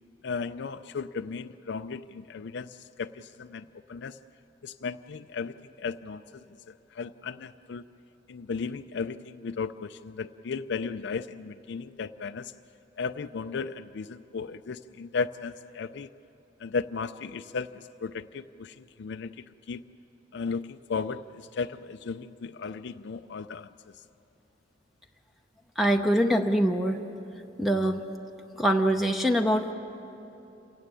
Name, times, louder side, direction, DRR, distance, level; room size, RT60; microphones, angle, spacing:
voice 1, 0.2-4.2 4.6-6.2 6.7-7.8 8.3-12.5 13.0-16.1 16.6-19.8 20.3-23.7, left 5 dB, 65° left, 10 dB, 0.4 m, -35 dB
voice 2, 25.8-27.0 27.6-28.0 28.6-29.7, equal, ahead, 5 dB, 0.7 m, -24 dB
27.5 x 16.5 x 9.0 m, 2.9 s
head